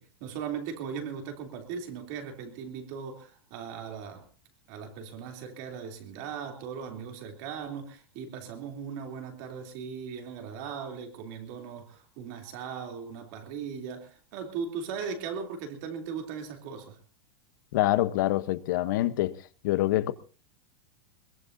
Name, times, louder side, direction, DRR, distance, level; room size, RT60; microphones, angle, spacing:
voice 1, 0.0-4.2 4.7-17.0, right 6 dB, 40° right, 3.1 m, -38 dB
voice 2, 17.7-19.4 19.6-20.1, left 15 dB, 50° left, 1.0 m, -25 dB
22.0 x 21.0 x 2.7 m
supercardioid pair, 175°, 13 cm